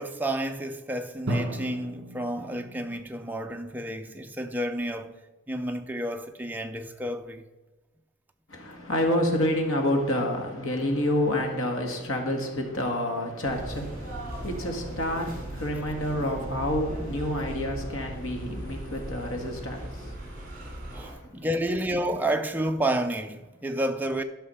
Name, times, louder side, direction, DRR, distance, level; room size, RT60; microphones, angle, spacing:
voice 1, 0.0-5.1 5.5-7.4 20.9-24.2, right 1 dB, 10° right, 0.5 m, -30 dB
Drum, 1.3-3.2, right 1 dB, 55° right, 1.4 m, -34 dB
voice 2, 8.5-21.2, left 1 dB, 70° left, 1.8 m, -29 dB
sound 1, 13.4-21.1, right 1 dB, 40° right, 2.9 m, -38 dB
12.0 x 5.6 x 5.6 m
head